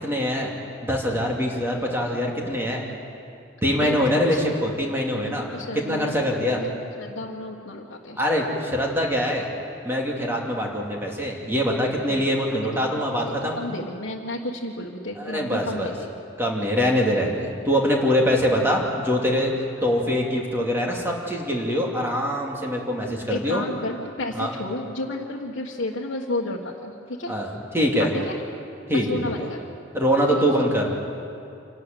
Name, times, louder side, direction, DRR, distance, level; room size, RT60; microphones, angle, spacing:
voice 1, 0.0-0.5 0.8-2.8 3.6-5.5 5.7-6.6 8.2-9.5 9.8-13.6 15.2-15.9 16.4-19.5 19.8-23.6 24.4-24.5 27.3-28.1 28.9-29.5 29.9-30.9, equal, 10° right, -1 dB, 2.7 m, -23 dB
voice 2, 3.8-4.4 5.3-6.1 6.5-8.2 12.1-12.2 12.5-12.6 12.9-13.0 13.2-16.1 23.3-27.4 28.0-28.4 28.9-29.6 30.3-30.7, left 2 dB, 60° left, -4 dB, 1.5 m, -32 dB
27.0 x 12.5 x 9.2 m, 2.5 s
head